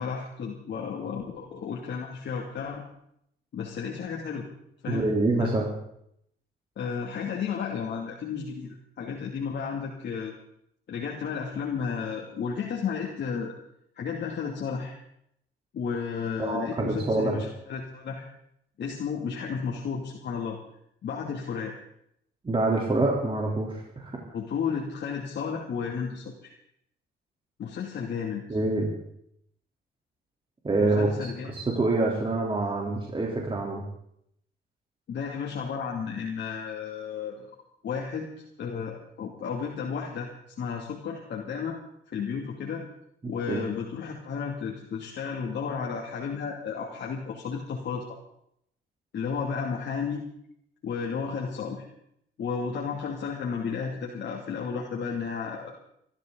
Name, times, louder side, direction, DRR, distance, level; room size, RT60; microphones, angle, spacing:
voice 1, 0.0-2.8 3.5-4.5 4.8-5.1 5.4-5.5 6.8-10.3 10.9-13.5 13.9-14.9 15.7-18.3 18.8-20.6 21.0-21.7 24.3-26.5 27.6-28.4 30.8-31.5 35.1-37.5 37.8-38.3 38.6-40.3 40.6-41.8 42.1-42.8 43.3-48.1 49.1-50.2 50.8-51.9 52.4-55.7, left 6 dB, 60° left, -1 dB, 2.6 m, -33 dB
voice 2, 4.9-5.7 16.4-17.3 22.4-24.1 28.5-28.9 30.6-33.8 43.2-43.6, right 2 dB, 25° right, -2 dB, 3.5 m, -26 dB
24.0 x 13.0 x 4.0 m, 0.73 s
cardioid pair, 90°, 20 cm